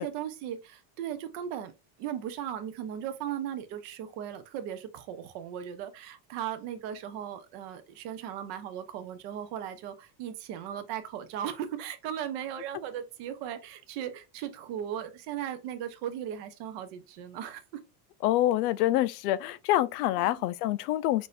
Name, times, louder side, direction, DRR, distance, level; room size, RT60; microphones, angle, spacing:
voice 1, 0.0-17.6 20.2-20.4, right 10 dB, 40° right, 0.5 m, -37 dB
voice 2, 18.2-21.3, left 14 dB, 70° left, 0.6 m, -26 dB
6.1 x 2.6 x 2.4 m
cardioid pair, 180°, 50 cm